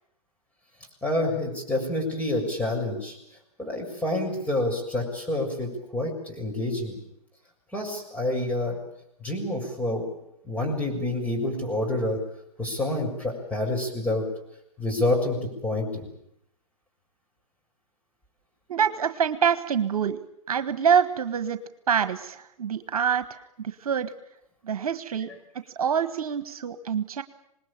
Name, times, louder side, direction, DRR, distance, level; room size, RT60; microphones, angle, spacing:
voice 1, 1.0-3.2 3.6-7.0 7.7-8.8 9.2-10.0 10.4-12.2 12.6-14.3 14.8-15.9, left 1 dB, 5° left, 0 dB, 6.9 m, -28 dB
voice 2, 18.7-20.2 20.5-21.6 21.9-24.1 24.6-25.3 25.7-27.2, right 7 dB, 70° right, 12 dB, 1.5 m, -25 dB
26.5 x 20.0 x 8.8 m, 0.78 s
hypercardioid pair, 125°, 19 cm